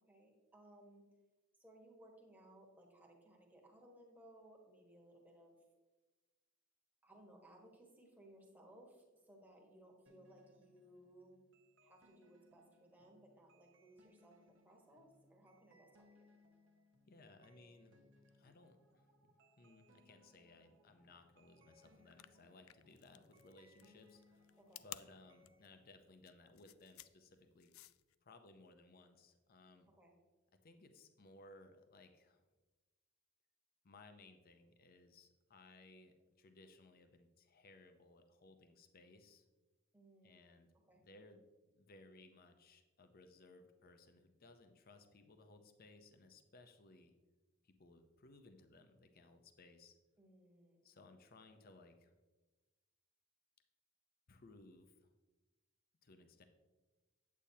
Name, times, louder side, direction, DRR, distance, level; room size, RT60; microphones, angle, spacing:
voice 1, 0.1-1.0 1.6-5.5 7.0-11.4 11.8-16.3 24.6-24.8 29.9-30.1 39.9-40.6 40.9-41.0 50.2-50.8, right 1 dB, 10° right, 0 dB, 1.3 m, -62 dB
sound 1, 10.1-25.8, left 1 dB, 60° right, 1.0 m, -70 dB
voice 2, 17.0-18.0 18.3-24.5 24.8-27.7 28.2-29.9 30.6-32.4 33.8-39.5 40.2-40.7 41.0-41.4 41.7-47.1 47.6-50.0 50.8-52.1 54.3-55.1 56.0-56.4, left 2 dB, 45° left, 7 dB, 0.7 m, -62 dB
sound 2, 22.0-28.1, left 15 dB, 70° left, 0.3 m, -55 dB
8.6 x 8.4 x 2.8 m, 1.2 s
head